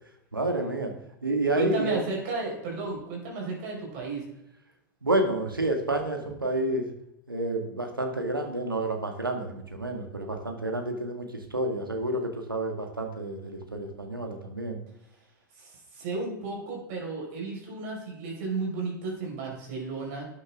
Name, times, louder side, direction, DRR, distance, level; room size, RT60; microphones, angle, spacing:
voice 1, 0.3-0.9 1.2-2.0 5.0-6.9 7.3-14.8, right 2 dB, 90° right, 4 dB, 1.8 m, -29 dB
voice 2, 1.5-4.2 15.6-20.3, right 3 dB, 50° right, -2 dB, 4.8 m, -33 dB
13.0 x 9.6 x 3.6 m, 0.82 s
figure-of-eight pair, 95°, 11 cm